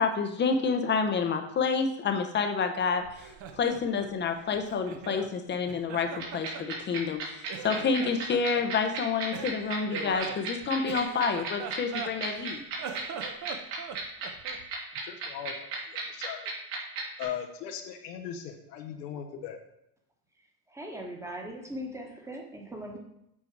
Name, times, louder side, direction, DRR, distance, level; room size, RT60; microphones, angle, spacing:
voice 1, 0.0-12.6, left 5 dB, 25° left, 6 dB, 0.7 m, -29 dB
Laughter, 3.0-5.3 5.7-7.2 7.5-8.7 9.3-12.4 12.7-14.7, right 7 dB, 40° right, 0.8 m, -41 dB
sound 1, 6.2-17.2, right 6 dB, 65° right, 2.8 m, -34 dB
voice 2, 15.0-16.5 17.2-19.6, left 9 dB, 85° left, 3 dB, 1.2 m, -39 dB
voice 3, 20.7-23.0, equal, 5° right, 1 dB, 1.2 m, -39 dB
8.0 x 4.5 x 4.6 m, 0.79 s
supercardioid pair, 130°, 47 cm